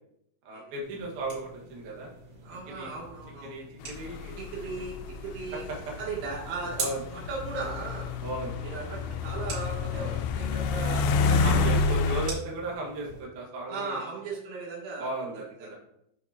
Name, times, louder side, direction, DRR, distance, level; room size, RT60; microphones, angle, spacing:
voice 1, 0.4-2.1 2.7-2.9 3.4-4.4 5.7-5.9 6.8-7.0 8.2-8.6 9.9-10.2 11.2-14.0 15.0-15.8, right 2 dB, 60° right, -3 dB, 2.2 m, -36 dB
sound 1, 0.8-13.2, right 3 dB, 45° right, 3.8 m, -44 dB
voice 2, 2.4-3.5 4.4-4.9 5.2-5.6 6.0-8.1 8.6-11.7 13.7-15.7, right 3 dB, 85° right, -4 dB, 4.7 m, -37 dB
sound 2, 3.8-12.3, left 4 dB, 85° left, 3.0 m, -28 dB
9.1 x 5.8 x 2.8 m, 0.76 s
omnidirectional pair, 5.3 m